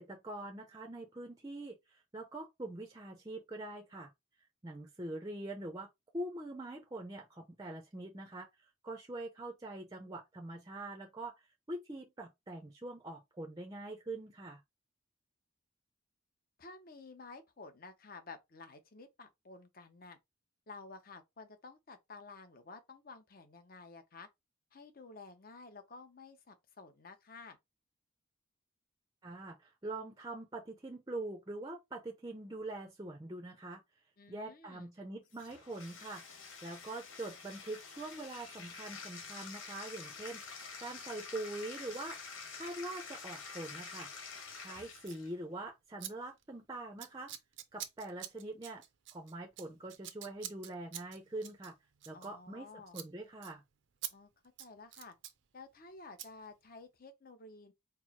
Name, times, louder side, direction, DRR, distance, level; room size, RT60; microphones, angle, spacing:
voice 1, 0.0-4.1 4.6-5.9 6.1-14.6 29.2-33.8 34.3-36.2 36.6-40.4 40.8-42.2 42.5-44.1 44.6-47.3 47.7-48.8 49.1-51.7 52.1-52.7 52.9-53.6, right 2 dB, 20° right, 0.5 m, -44 dB
voice 2, 16.6-20.2 20.7-24.3 24.7-27.6 34.2-34.9 52.1-53.0 54.1-54.3 54.6-55.1 55.5-57.7, left 3 dB, 45° left, 0.8 m, -52 dB
Bathtub (filling or washing), 35.3-45.3, left 5 dB, 85° left, 1.4 m, -48 dB
Scissors, 45.0-45.2 46.0-46.1 46.4-46.6 47.0-52.6 52.9-53.1 53.4-53.5 54.0-54.1 54.4-55.4 56.2-56.3, right 11 dB, 65° right, 0.5 m, -46 dB
4.5 x 2.0 x 4.3 m
head